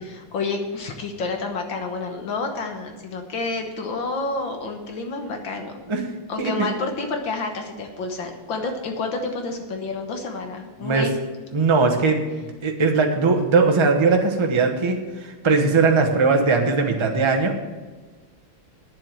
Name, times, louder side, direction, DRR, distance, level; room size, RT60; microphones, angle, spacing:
voice 1, 0.0-5.8 6.3-11.1, left 3 dB, 65° left, 4 dB, 1.9 m, -29 dB
voice 2, 11.5-12.2 12.6-17.5, right 4 dB, 20° right, 3 dB, 0.8 m, -19 dB
9.7 x 7.6 x 7.5 m, 1.3 s
omnidirectional pair, 2.3 m